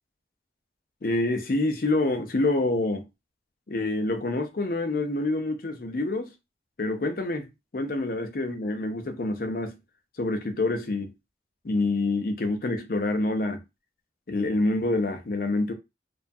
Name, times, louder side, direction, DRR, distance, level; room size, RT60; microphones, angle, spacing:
voice 1, 1.0-3.0 3.7-6.3 6.8-9.7 10.2-11.1 11.6-13.6 14.3-15.7, left 2 dB, 50° left, 0.5 m, -27 dB
2.6 x 2.3 x 2.6 m
head